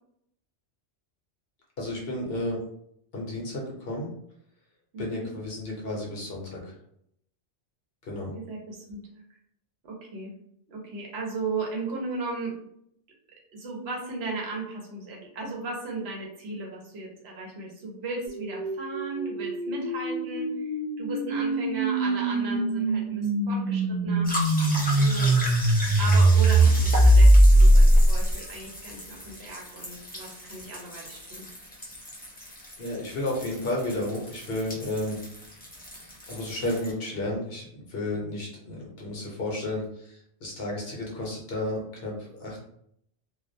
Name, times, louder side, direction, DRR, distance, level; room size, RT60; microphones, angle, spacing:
voice 1, 1.8-2.6 3.1-4.1 5.0-6.6 8.0-8.3 32.8-35.2 35.9-42.6, left 1 dB, 60° left, -2 dB, 0.8 m, -32 dB
voice 2, 4.9-5.2 8.3-9.2 9.8-10.3 10.7-12.5 13.5-24.3 24.9-25.4 26.0-31.5, right 3 dB, 65° right, -1 dB, 0.9 m, -36 dB
sound 1, 18.3-28.3, right 1 dB, 20° right, 0.9 m, -21 dB
sound 2, 24.2-36.9, equal, 15° left, 0.3 m, -37 dB
2.3 x 2.1 x 2.6 m, 0.71 s
omnidirectional pair, 1.2 m